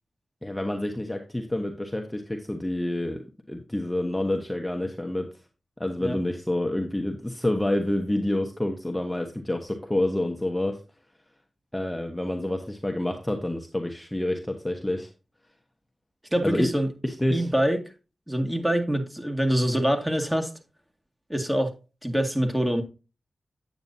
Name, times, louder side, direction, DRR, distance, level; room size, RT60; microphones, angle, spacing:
voice 1, 0.4-3.2 3.5-5.3 5.8-10.8 11.7-15.1 16.4-16.7 17.0-17.5, left 1 dB, 10° left, 1.1 m, -28 dB
voice 2, 16.3-16.9 17.3-17.8 18.3-20.5 21.3-21.7 22.0-22.8, equal, 10° right, 2.1 m, -25 dB
8.9 x 8.0 x 2.8 m
cardioid pair, 50°, 0 cm